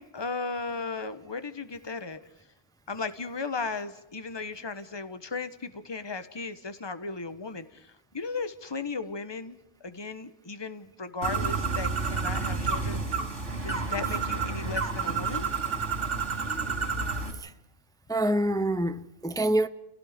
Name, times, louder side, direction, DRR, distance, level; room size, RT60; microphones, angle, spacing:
voice 1, 0.0-2.2 2.9-13.0 13.6-15.5, left 4 dB, 20° left, 1.2 m, -36 dB
Bird, 11.2-17.3, right 4 dB, 85° right, 5.0 m, -30 dB
voice 2, 18.1-19.7, right 1 dB, 5° left, 0.5 m, -27 dB
30.0 x 17.5 x 5.2 m
omnidirectional pair, 1.2 m